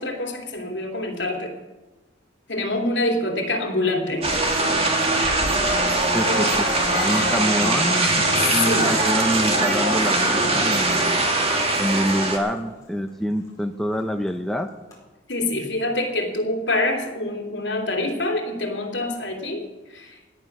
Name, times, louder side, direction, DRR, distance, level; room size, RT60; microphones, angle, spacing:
voice 1, 0.0-1.5 2.5-4.3 6.2-6.5 6.9-7.4 8.0-8.9 15.3-20.2, left 2 dB, 65° left, 2 dB, 3.0 m, -26 dB
sound 1, 4.2-4.3 5.1-13.1 13.4-14.5 14.9-15.0, left 2 dB, 15° left, 4.2 m, -40 dB
sound 2, 4.2-12.4, right 2 dB, 30° right, 2.0 m, -21 dB
voice 2, 6.1-11.2 11.8-14.7, equal, ahead, 5 dB, 0.6 m, -26 dB
Acoustic guitar, 8.1-12.7, left 1 dB, 60° right, 4.7 m, -39 dB
17.5 x 10.5 x 6.1 m, 1.2 s
head